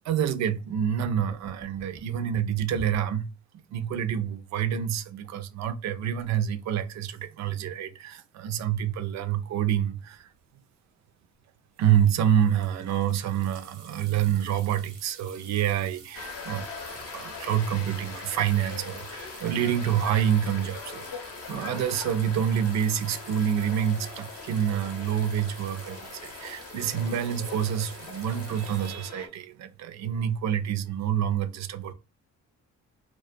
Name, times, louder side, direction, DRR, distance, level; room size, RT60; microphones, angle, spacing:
voice 1, 0.1-3.3 3.7-10.3 11.8-31.9, right 9 dB, 65° right, 0.4 m, -27 dB
sound 1, 1.0-3.2, equal, 5° left, 0.6 m, -44 dB
sound 2, 10.2-10.4 11.8-28.9, right 6 dB, 85° right, 0.8 m, -49 dB
sound 3, 16.1-29.3, left 5 dB, 55° left, 0.6 m, -41 dB
2.2 x 2.2 x 2.5 m
cardioid pair, 90°, 30 cm